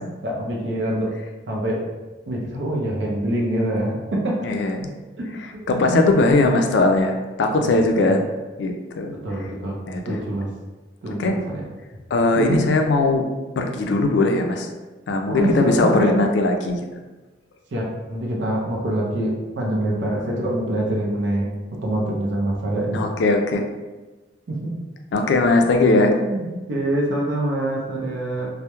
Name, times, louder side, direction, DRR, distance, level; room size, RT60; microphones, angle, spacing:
voice 1, 0.2-1.1 1.5-1.8 2.3-4.3 5.7-6.4 8.0-8.2 9.2-10.5 11.0-11.6 12.4-12.6 15.3-16.1 17.7-23.1 24.5-24.7 25.8-28.5, right 1 dB, 70° right, -2 dB, 0.5 m, -25 dB
voice 2, 4.4-4.9 5.7-8.2 8.6-9.1 9.9-10.2 11.1-11.4 12.1-13.2 13.6-14.7 15.1-16.8 22.9-23.7 25.1-26.1, left 2 dB, 65° left, 4 dB, 0.3 m, -19 dB
2.2 x 2.0 x 2.9 m, 1.2 s
head